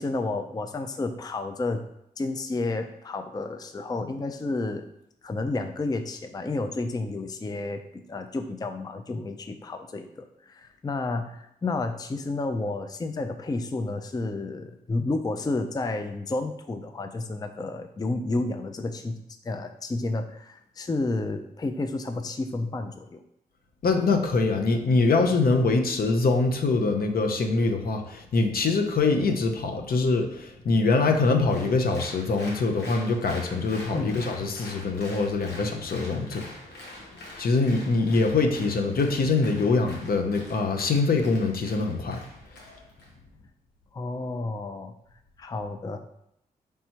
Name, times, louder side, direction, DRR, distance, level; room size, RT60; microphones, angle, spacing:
voice 1, 0.0-1.8 2.2-4.8 5.2-23.2 33.9-34.1 43.9-44.9 45.4-46.0, left 2 dB, 25° left, 7 dB, 0.4 m, -31 dB
voice 2, 23.8-36.5 37.4-42.2, left 3 dB, 65° left, 4 dB, 0.7 m, -24 dB
Applause, 31.5-43.1, left 1 dB, 85° left, 1.1 m, -45 dB
4.2 x 3.4 x 2.9 m, 0.78 s
supercardioid pair, 45°, 17 cm